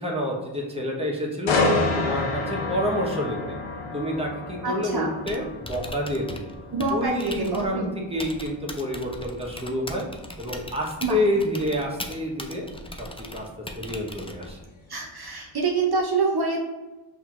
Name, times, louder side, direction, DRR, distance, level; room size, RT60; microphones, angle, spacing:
voice 1, 0.0-1.6 2.0-3.6 3.9-6.5 6.9-10.1 10.4-12.7 13.0-13.1 13.3-13.5 13.8-14.6, left 1 dB, 15° right, -2 dB, 1.0 m, -28 dB
sound 1, 1.5-15.3 15.7-16.0, left 3 dB, 80° left, 0.7 m, -31 dB
voice 2, 4.6-5.1 6.7-7.9 11.0-11.2 14.9-16.6, right 4 dB, 50° right, -1 dB, 0.7 m, -26 dB
Typing, 5.1-14.7, left 1 dB, 10° left, 0.4 m, -40 dB
5.7 x 2.8 x 2.4 m, 1.1 s
cardioid pair, 40°, 47 cm